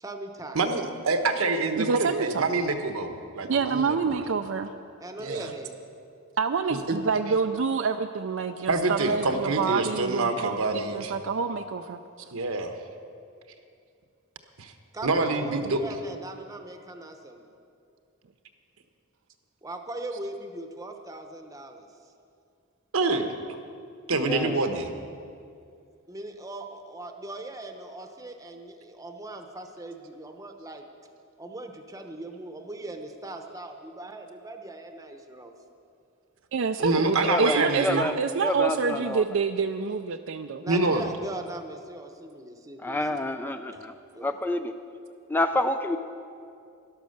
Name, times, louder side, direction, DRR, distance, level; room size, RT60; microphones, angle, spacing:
voice 1, 0.0-0.6 5.0-5.8 14.9-17.5 19.6-22.1 26.1-30.9 31.4-35.5 40.6-43.3 43.7-43.8 44.1-44.3, right 2 dB, 15° right, 5 dB, 0.8 m, -40 dB
voice 2, 0.5-4.2 5.2-5.5 6.9-7.0 8.7-11.1 12.3-12.7 14.6-14.7 15.0-15.8 22.9-23.3 24.1-24.9 36.8-38.1 40.7-41.1, right 3 dB, 75° right, 6 dB, 1.1 m, -26 dB
voice 3, 1.7-2.4 3.4-4.7 6.4-10.6 10.9-12.3 36.5-40.6, right 5 dB, 60° right, 7 dB, 0.4 m, -27 dB
voice 4, 24.1-24.6 37.3-38.1 38.4-39.2 42.8-43.9 44.2-44.7 45.3-46.0, left 1 dB, 10° left, 8 dB, 0.4 m, -28 dB
12.0 x 11.5 x 6.5 m, 2.4 s
head